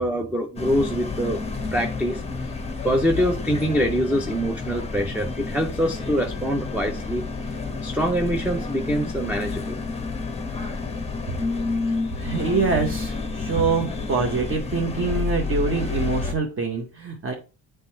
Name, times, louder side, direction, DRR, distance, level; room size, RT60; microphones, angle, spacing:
voice 1, 0.0-2.2 2.8-7.2 7.8-9.8, equal, 5° right, 4 dB, 0.4 m, -24 dB
sound 1, 0.6-16.3, left 4 dB, 15° left, 0.8 m, -30 dB
voice 2, 12.2-17.3, right 4 dB, 25° right, 2 dB, 0.8 m, -25 dB
8.1 x 3.3 x 4.4 m, 0.35 s
cardioid pair, 125°, 49 cm